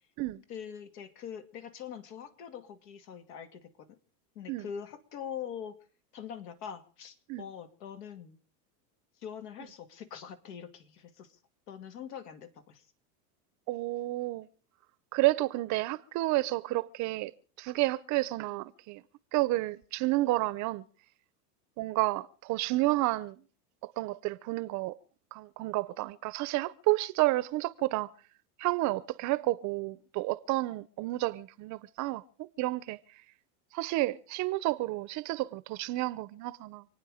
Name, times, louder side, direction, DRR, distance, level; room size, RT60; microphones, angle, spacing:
voice 1, 0.5-4.0 4.3-5.8 6.1-8.4 9.2-11.4 11.7-12.8, left 8 dB, 75° left, 2.5 m, -43 dB
voice 2, 13.7-14.5 15.1-17.3 17.6-19.0 19.3-20.8 21.8-23.4 23.8-24.9 25.3-28.1 28.6-33.0 33.7-36.9, right 19 dB, 40° right, 0.7 m, -30 dB
28.0 x 9.4 x 5.0 m
supercardioid pair, 125°, 48 cm